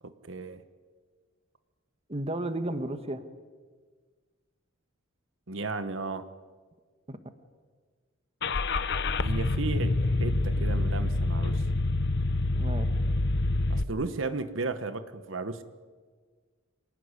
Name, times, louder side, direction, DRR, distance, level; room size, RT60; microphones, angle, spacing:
voice 1, 0.0-0.6 5.5-6.3 9.2-11.6 13.7-15.6, right 3 dB, 70° right, 11 dB, 1.3 m, -34 dB
voice 2, 2.1-3.2 7.1-7.2 12.5-12.9, right 1 dB, 30° right, 9 dB, 1.4 m, -33 dB
Car / Engine starting, 8.4-13.8, left 2 dB, 60° left, 1.0 m, -27 dB
26.5 x 18.5 x 9.8 m, 1.5 s
head